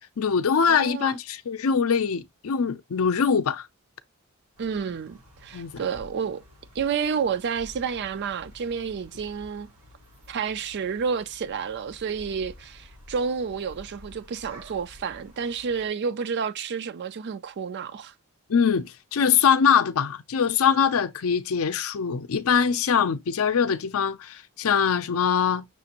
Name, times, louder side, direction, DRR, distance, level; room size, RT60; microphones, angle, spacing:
voice 1, 0.2-3.7 5.5-5.7 18.5-25.6, left 7 dB, 70° left, 0.5 m, -23 dB
voice 2, 0.7-1.2 4.6-6.4 6.8-9.7 10.3-18.1, right 6 dB, 50° right, 0.4 m, -30 dB
sound 1, 4.6-15.9, left 1 dB, 75° right, 1.3 m, -50 dB
6.0 x 2.5 x 2.9 m
head